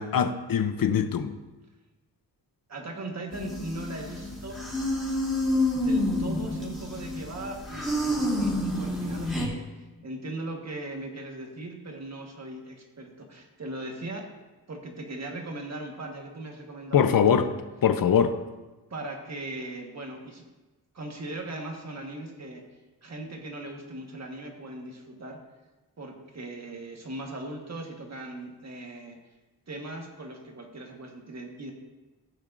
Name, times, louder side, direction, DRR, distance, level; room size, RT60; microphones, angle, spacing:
voice 1, 0.0-1.4 16.9-17.5 17.8-18.3, left 7 dB, 60° left, 11 dB, 0.7 m, -22 dB
voice 2, 2.7-4.6 5.8-14.3 14.7-17.4 18.2-18.3 18.9-20.4 20.9-22.6 23.0-25.4 26.0-29.2 29.7-31.7, right 2 dB, 40° right, 2 dB, 1.5 m, -39 dB
sound 1, 3.3-9.5, left 1 dB, ahead, 2.7 m, -29 dB
15.5 x 8.5 x 2.6 m, 1.2 s
wide cardioid pair, 165°, 39 cm